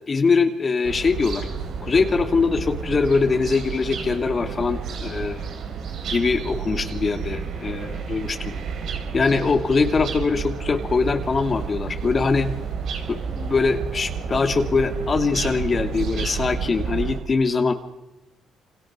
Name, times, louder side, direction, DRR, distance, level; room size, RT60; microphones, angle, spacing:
voice 1, 0.1-1.5 1.8-5.5 6.1-8.5 9.1-12.5 13.1-17.7, left 4 dB, 35° left, 5 dB, 2.7 m, -22 dB
sound 1, 0.8-17.2, right 6 dB, 75° right, 4.8 m, -31 dB
28.5 x 26.0 x 6.2 m, 1.0 s
cardioid pair, 90°, 0 cm